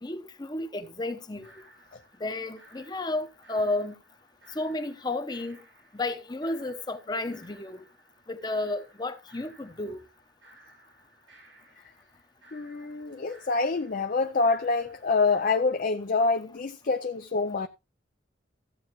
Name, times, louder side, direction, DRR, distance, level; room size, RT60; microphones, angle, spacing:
voice 1, 0.0-1.5 2.2-3.9 4.5-5.6 5.9-7.9 8.3-10.0, left 2 dB, 20° left, 0.8 m, -32 dB
sound 1, 1.4-15.5, right 1 dB, 90° right, 5.2 m, -58 dB
voice 2, 12.5-17.7, left 3 dB, 45° left, 0.5 m, -26 dB
14.5 x 7.8 x 3.0 m
head